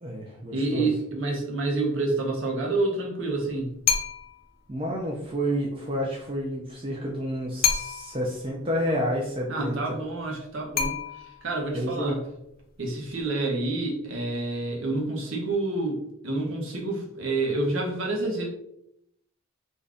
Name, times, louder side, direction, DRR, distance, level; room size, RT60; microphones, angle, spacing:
voice 1, 0.0-0.9 4.7-10.0 11.7-12.2, equal, 25° right, -2 dB, 0.4 m, -30 dB
voice 2, 0.5-3.8 9.5-11.0 11.4-12.2 12.8-18.5, right 2 dB, 70° right, -1 dB, 0.8 m, -28 dB
sound 1, 3.9-4.5 7.6-8.3 10.8-11.6, left 6 dB, 45° left, 0.4 m, -27 dB
2.6 x 2.5 x 3.3 m, 0.79 s
head